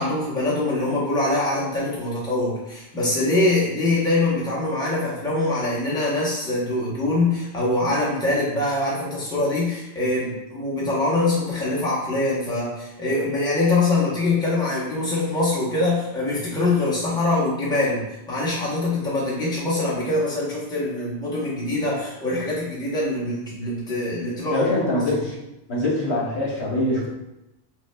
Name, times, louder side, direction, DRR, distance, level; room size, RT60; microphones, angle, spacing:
voice 1, 0.0-24.7, left 2 dB, 5° left, -7 dB, 0.8 m, -23 dB
voice 2, 24.5-25.4 25.7-27.1, left 1 dB, 80° left, -5 dB, 1.3 m, -23 dB
5.4 x 2.0 x 2.2 m, 0.91 s
omnidirectional pair, 1.1 m